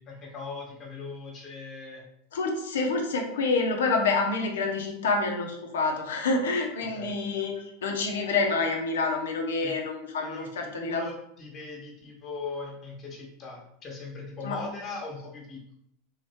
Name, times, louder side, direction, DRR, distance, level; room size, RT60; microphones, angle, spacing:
voice 1, 0.0-2.0 6.8-7.2 9.6-9.8 10.2-15.7, left 4 dB, 40° left, -1 dB, 1.4 m, -40 dB
voice 2, 2.3-11.1 14.4-14.6, left 3 dB, 85° left, 2 dB, 0.9 m, -27 dB
3.7 x 3.2 x 3.5 m, 0.75 s
hypercardioid pair, 115°, 0 cm